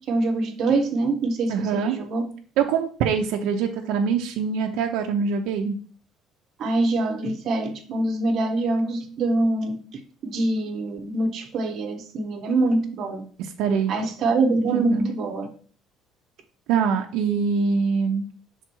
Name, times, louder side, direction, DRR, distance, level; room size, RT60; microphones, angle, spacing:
voice 1, 0.1-2.3 6.6-13.2 13.9-15.5, right 2 dB, 45° right, 5 dB, 1.0 m, -24 dB
voice 2, 1.5-2.0 2.6-5.8 13.4-14.1 14.6-15.1 16.7-18.2, right 6 dB, 75° right, 3 dB, 0.7 m, -24 dB
6.0 x 3.6 x 4.5 m, 0.43 s
cardioid pair, 170°, 0 cm